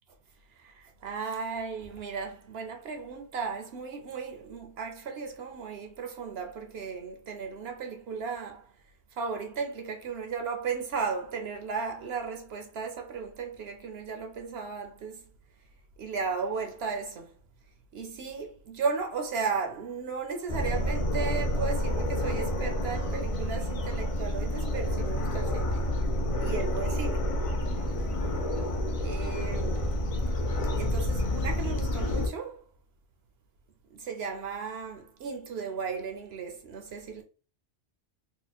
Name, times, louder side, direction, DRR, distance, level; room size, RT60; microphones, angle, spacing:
voice 1, 0.6-8.7 9.2-15.2 16.0-17.3 17.9-26.0 26.4-27.2 27.7-28.0 29.0-29.9 30.8-32.6 33.9-37.2, right 5 dB, 65° right, 0.8 m, -35 dB
sound 1, 20.5-32.3, left 1 dB, 50° left, 0.4 m, -29 dB
2.9 x 2.1 x 4.0 m
omnidirectional pair, 1.2 m